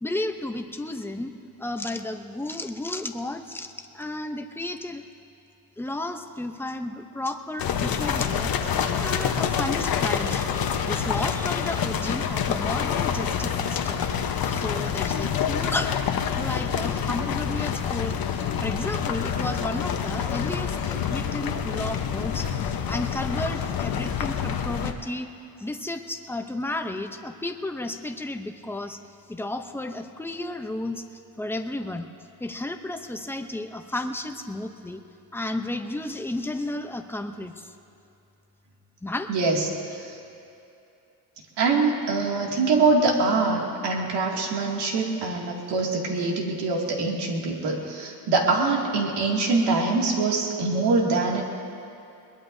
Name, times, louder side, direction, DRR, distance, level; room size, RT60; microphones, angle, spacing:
voice 1, 0.0-1.3 1.6-5.0 5.8-14.1 14.5-15.9 16.3-25.3 25.6-29.0 29.3-31.0 31.4-32.1 32.4-35.0 35.3-37.7 39.0-39.3, left 1 dB, 5° left, 6 dB, 0.7 m, -33 dB
sound 1, 7.6-24.9, left 8 dB, 60° left, 1.0 m, -27 dB
voice 2, 39.3-40.2 41.6-51.4, right 3 dB, 80° right, -1 dB, 2.5 m, -24 dB
22.0 x 21.0 x 2.7 m, 2.7 s
cardioid pair, 135°, 40 cm